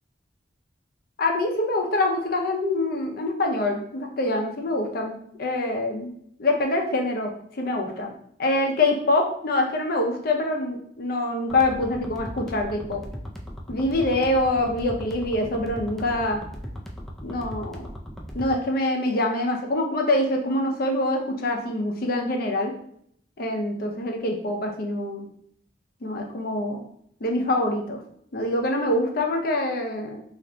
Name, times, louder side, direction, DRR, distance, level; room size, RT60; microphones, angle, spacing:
voice 1, 1.2-6.1 6.4-8.1 8.4-13.0 13.7-16.4 17.2-17.8 18.3-22.7 23.4-25.3 26.0-26.8 27.2-28.0 28.3-30.2, left 2 dB, 55° left, 2 dB, 0.5 m, -25 dB
sound 1, 11.5-18.5, equal, ahead, 0.3 m, -38 dB
2.5 x 2.1 x 3.8 m, 0.68 s
head